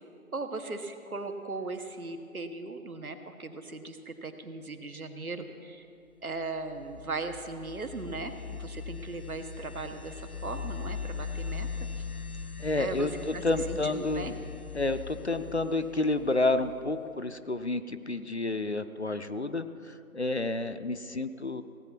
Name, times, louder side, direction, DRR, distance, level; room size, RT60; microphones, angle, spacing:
voice 1, 0.3-5.9 6.2-11.7 12.0-12.1 12.7-13.1 13.3-14.3, right 3 dB, 75° right, 7 dB, 1.4 m, -38 dB
sound 1, 6.6-17.1, left 6 dB, 85° left, 1.0 m, -40 dB
voice 2, 12.6-14.4 14.7-21.6, left 2 dB, 50° left, 10 dB, 0.6 m, -30 dB
17.5 x 8.3 x 5.9 m, 2.5 s
figure-of-eight pair, 170°, 43 cm